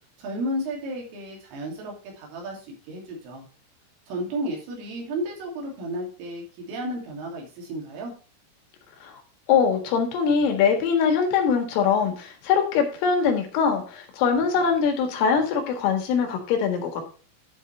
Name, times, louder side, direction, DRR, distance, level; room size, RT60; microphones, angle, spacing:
voice 1, 0.2-3.5 4.1-8.1, right 1 dB, 75° right, -1 dB, 5.2 m, -33 dB
voice 2, 9.5-17.0, left 6 dB, 75° left, 4 dB, 4.2 m, -22 dB
11.5 x 5.6 x 4.2 m, 0.38 s
omnidirectional pair, 6.0 m